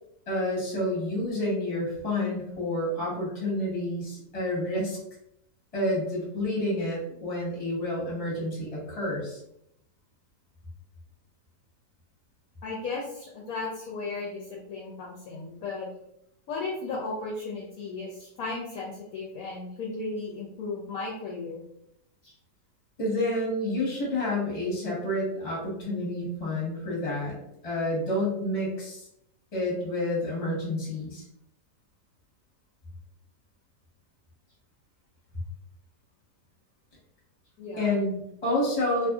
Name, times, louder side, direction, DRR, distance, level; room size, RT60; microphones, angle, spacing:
voice 1, 0.3-5.0 5.7-9.4 23.0-27.4 27.6-29.1 29.5-31.2 37.8-39.1, left 1 dB, 25° left, -5 dB, 1.0 m, -29 dB
voice 2, 12.6-15.9 16.5-21.6 22.2-22.3 37.6-37.9, left 3 dB, 70° left, -3 dB, 0.9 m, -35 dB
2.8 x 2.5 x 2.3 m, 0.75 s
omnidirectional pair, 1.8 m